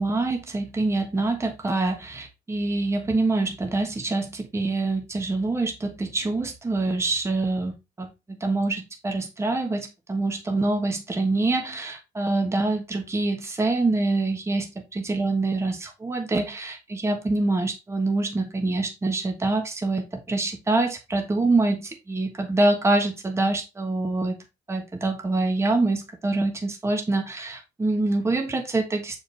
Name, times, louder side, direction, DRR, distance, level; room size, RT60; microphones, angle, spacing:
voice 1, 0.0-8.1 8.4-24.4 24.7-29.2, right 2 dB, 15° right, 1.3 m, -25 dB
6.7 x 5.1 x 3.2 m
cardioid pair, 110°, 17 cm